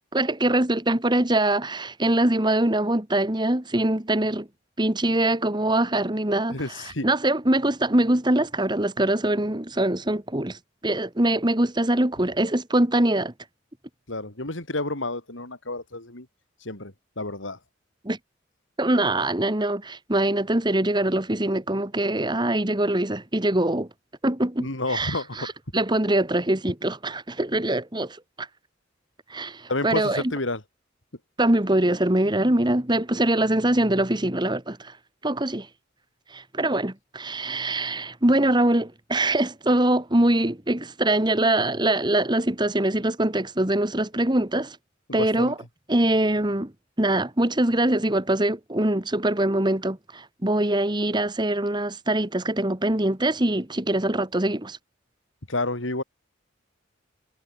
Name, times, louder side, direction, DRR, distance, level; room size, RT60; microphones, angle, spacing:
voice 1, 0.1-4.5 4.8-6.6 7.0-10.6 10.8-13.3 18.0-18.2 18.8-23.9 24.2-28.5 29.3-30.2 31.4-34.9 35.2-35.7 36.3-44.8 45.1-45.5 45.9-46.7 47.0-54.8, right 1 dB, 25° right, 1.8 m, -23 dB
voice 2, 6.5-7.1 14.1-16.3 16.6-17.6 24.6-25.5 29.7-30.6 45.1-45.5 55.5-56.0, left 2 dB, 80° left, 4.6 m, -30 dB
head